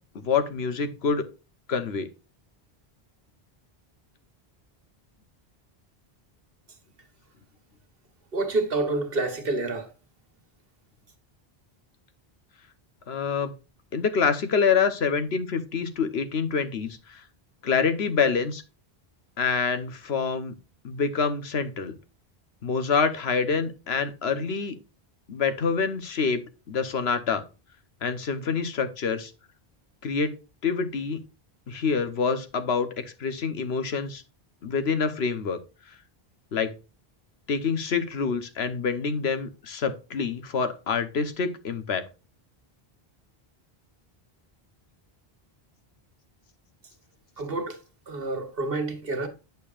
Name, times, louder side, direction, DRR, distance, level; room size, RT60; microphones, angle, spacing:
voice 1, 0.1-1.3 1.7-2.1 13.1-13.5 13.9-17.2 17.6-18.6 19.4-20.5 20.8-22.0 22.6-24.7 25.3-27.4 28.0-29.3 30.0-30.3 30.6-31.2 31.7-34.2 34.6-35.6 36.5-36.7 37.5-42.0, left 5 dB, 90° left, 1.2 m, -26 dB
voice 2, 8.3-9.9 47.4-47.8 48.1-49.3, right 2 dB, 65° right, 1.6 m, -28 dB
8.2 x 6.7 x 2.4 m
omnidirectional pair, 1.0 m